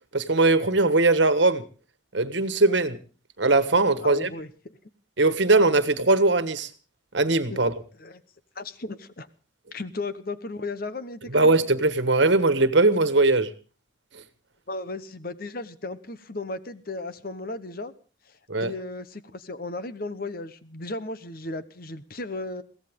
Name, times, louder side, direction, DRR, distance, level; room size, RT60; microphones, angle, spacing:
voice 1, 0.1-1.6 2.1-3.0 3.4-4.3 5.2-6.7 7.1-7.7 11.3-13.5 18.5-18.7, right 2 dB, 65° right, 12 dB, 1.5 m, -20 dB
voice 2, 4.0-4.8 7.5-7.6 8.0-8.2 8.5-9.3 9.7-11.6 14.7-17.9 18.3-22.6, left 2 dB, 45° left, 13 dB, 1.1 m, -35 dB
22.5 x 16.5 x 3.7 m, 0.37 s
head